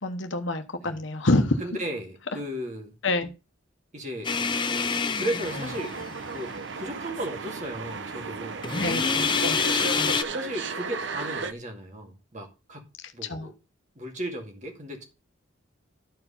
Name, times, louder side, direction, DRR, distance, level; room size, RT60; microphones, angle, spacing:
voice 1, 0.0-1.6 3.0-3.3 8.8-9.6 9.9-10.1 13.2-13.5, left 2 dB, 70° left, 1.1 m, -27 dB
voice 2, 1.6-2.9 3.9-4.3 5.2-6.0 6.3-9.1 10.3-12.9 13.1-13.5 14.0-15.0, right 1 dB, 35° right, 2.1 m, -35 dB
sound 1, 4.2-6.3 8.6-10.2, left 5 dB, 25° left, 0.6 m, -26 dB
sound 2, 5.4-11.5, right 4 dB, 65° right, 0.8 m, -35 dB
12.5 x 4.8 x 5.5 m
head